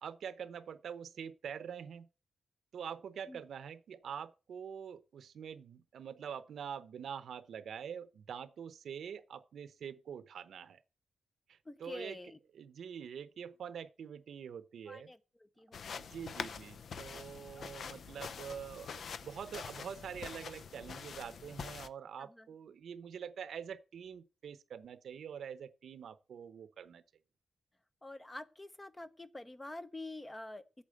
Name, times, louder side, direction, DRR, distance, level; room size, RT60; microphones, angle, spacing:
voice 1, 0.0-2.1 2.7-10.8 11.5-12.2 12.5-15.1 15.9-27.0, right 7 dB, 75° right, 0.8 m, -45 dB
voice 2, 11.7-12.4 14.9-15.2 15.6-16.1 17.6-18.0 22.4-22.5 28.0-30.6, left 2 dB, 15° left, 0.7 m, -47 dB
sound 1, 15.7-21.9, left 6 dB, 55° left, 0.6 m, -45 dB
8.6 x 7.4 x 7.7 m
wide cardioid pair, 180°, 0 cm